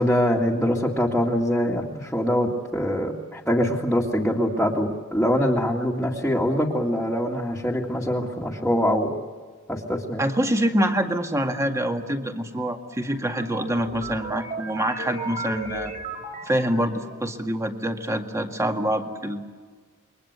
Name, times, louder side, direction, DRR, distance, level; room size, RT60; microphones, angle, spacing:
voice 1, 0.0-9.2 9.7-10.2, equal, 5° left, -4 dB, 2.2 m, -23 dB
voice 2, 10.2-15.9 16.4-19.4, right 1 dB, 15° right, 4 dB, 2.0 m, -25 dB
sound 1, 13.1-17.3, right 3 dB, 40° right, 5.9 m, -35 dB
29.0 x 23.0 x 8.2 m, 1.5 s
head